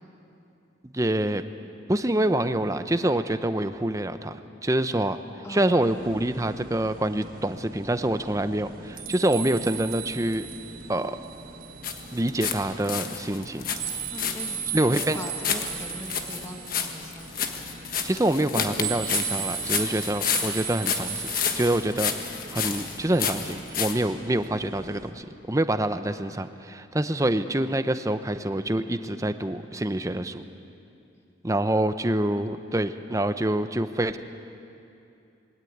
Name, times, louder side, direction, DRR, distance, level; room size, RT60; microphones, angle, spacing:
voice 1, 0.8-1.4 1.9-5.2 5.5-10.5 10.9-11.2 12.1-13.7 14.7-15.2 18.0-30.4 31.4-34.2, right 1 dB, 15° right, 10 dB, 0.7 m, -26 dB
voice 2, 5.4-5.8 14.1-17.6, equal, 15° left, 3 dB, 1.4 m, -41 dB
sound 1, 5.8-25.1, right 7 dB, 45° right, 1.4 m, -38 dB
sound 2, 11.8-12.6 12.8-23.9, left 7 dB, 45° left, 1.4 m, -30 dB
20.5 x 18.0 x 9.3 m, 2.7 s
head